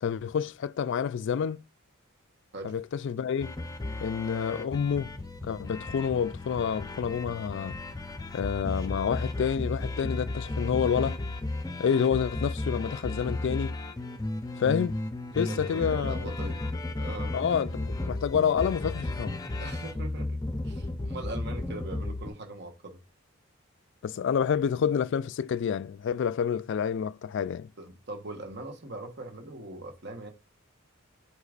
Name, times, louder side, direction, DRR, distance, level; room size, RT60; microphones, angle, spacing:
voice 1, 0.0-1.6 2.6-3.6 4.0-5.1 5.4-7.8 8.3-11.2 11.8-13.8 14.6-15.0 15.3-16.3 17.3-19.4 24.0-27.7, left 7 dB, 55° left, 0.3 m, -28 dB
sound 1, 3.4-22.3, left 2 dB, 15° left, 0.6 m, -34 dB
voice 2, 15.5-16.6 17.0-17.3 19.6-20.4 20.6-23.0 27.8-30.3, right 2 dB, 55° right, 1.2 m, -40 dB
8.3 x 4.8 x 2.4 m
head